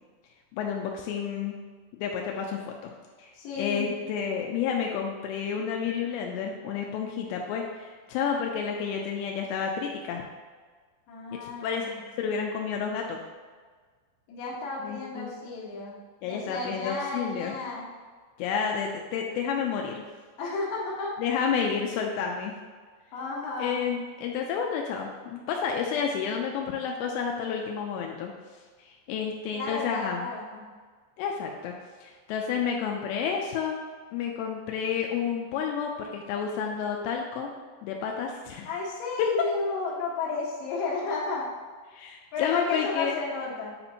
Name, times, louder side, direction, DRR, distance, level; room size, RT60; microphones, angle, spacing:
voice 1, 0.5-1.6 2.0-2.9 3.2-3.3 3.6-10.2 11.3-13.2 14.8-15.3 16.2-17.6 18.4-20.0 21.2-22.5 23.6-28.3 28.8-30.3 31.2-31.7 32.0-33.8 34.1-37.5 37.8-38.7 39.2-39.3 41.9-43.2, left 6 dB, 85° left, 1 dB, 2.7 m, -30 dB
voice 2, 3.3-3.9 11.1-12.0 14.3-16.0 16.2-17.9 19.7-19.8 20.4-21.1 23.1-23.8 29.5-30.7 38.7-41.5 42.3-43.8, left 4 dB, 65° left, -5 dB, 2.7 m, -33 dB
8.7 x 4.3 x 2.8 m, 1.5 s
omnidirectional pair, 4.9 m